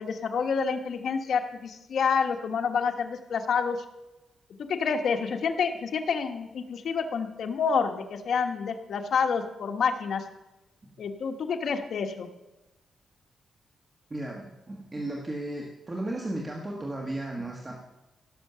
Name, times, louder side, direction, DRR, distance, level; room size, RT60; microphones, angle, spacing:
voice 1, 0.0-3.8 4.7-10.2 11.0-12.3, left 6 dB, 65° left, 5 dB, 1.2 m, -28 dB
voice 2, 14.1-17.7, right 1 dB, 25° right, 0 dB, 1.4 m, -35 dB
16.5 x 6.5 x 6.8 m, 1.0 s
wide cardioid pair, 140°, 0 cm